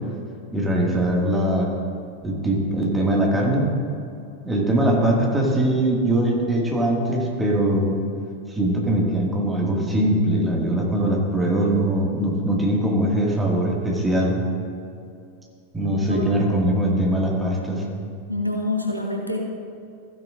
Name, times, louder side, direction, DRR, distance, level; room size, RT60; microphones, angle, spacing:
voice 1, 0.5-1.7 2.2-3.7 4.5-8.0 8.5-14.4 15.7-17.8, right 1 dB, 10° right, -2 dB, 2.0 m, -21 dB
voice 2, 15.9-16.5 18.3-19.4, left 2 dB, 90° left, 0 dB, 1.2 m, -27 dB
14.5 x 10.0 x 2.6 m, 2.5 s
figure-of-eight pair, 90°, 0 cm